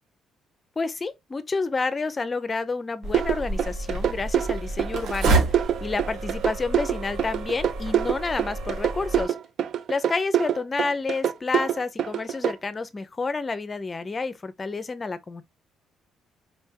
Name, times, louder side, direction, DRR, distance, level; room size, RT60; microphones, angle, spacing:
voice 1, 0.8-9.3 9.9-15.4, left 3 dB, 20° left, 0.6 m, -29 dB
sound 1, 3.0-9.2, right 3 dB, 75° right, 1.9 m, -29 dB
sound 2, 3.1-12.5, right 10 dB, 55° right, 0.5 m, -25 dB
4.3 x 3.4 x 2.8 m
cardioid pair, 140°, 0 cm